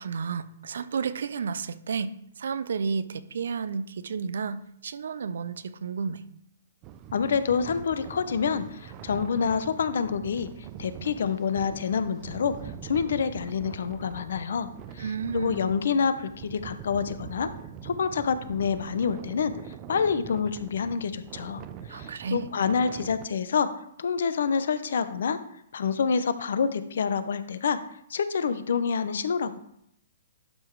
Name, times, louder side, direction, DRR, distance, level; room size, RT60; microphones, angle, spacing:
voice 1, 0.0-2.1 2.4-6.2 15.0-15.7 21.9-22.5, right 5 dB, 75° right, 0.6 m, -32 dB
sound 1, 6.8-23.3, right 9 dB, 30° right, 0.6 m, -43 dB
voice 2, 7.1-12.5 12.8-14.7 14.9-17.5 17.8-19.5 19.9-21.6 21.9-23.7 24.0-25.4 25.7-27.8 28.1-29.6, left 6 dB, 70° left, 0.7 m, -27 dB
11.5 x 3.9 x 4.7 m
hypercardioid pair, 135°, 0 cm